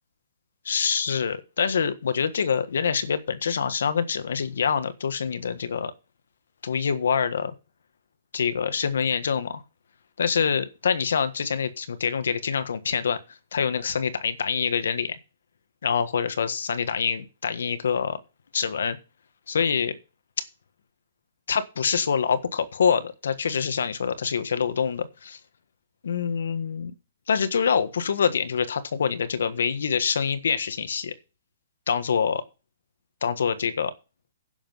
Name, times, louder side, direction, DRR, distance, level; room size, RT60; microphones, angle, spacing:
voice 1, 0.6-5.9 6.6-7.5 8.3-9.6 10.2-13.2 13.5-15.2 15.8-18.2 18.5-19.0 19.5-20.0 21.5-25.4 26.0-26.9 27.3-31.1 31.9-32.4 33.2-33.9, left 6 dB, 80° left, 11 dB, 1.5 m, -25 dB
11.0 x 7.1 x 5.6 m, 0.31 s
hypercardioid pair, 165°, 0 cm